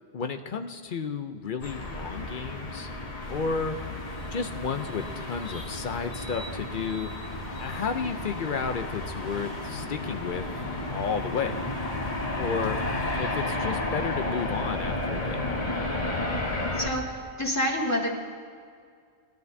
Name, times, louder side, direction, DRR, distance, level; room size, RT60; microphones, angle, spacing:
voice 1, 0.1-2.9 3.3-3.8 4.3-7.1 7.6-10.4 10.8-11.6 12.4-12.8 13.2-15.4, left 5 dB, 55° left, 7 dB, 0.7 m, -32 dB
sound 1, 1.6-16.9, left 2 dB, 35° left, 1.2 m, -32 dB
sound 2, 3.2-13.2, left 1 dB, 70° left, 2.0 m, -44 dB
voice 2, 16.7-18.1, equal, 15° left, -3 dB, 1.8 m, -28 dB
20.5 x 12.0 x 2.7 m, 2.1 s
omnidirectional pair, 1.1 m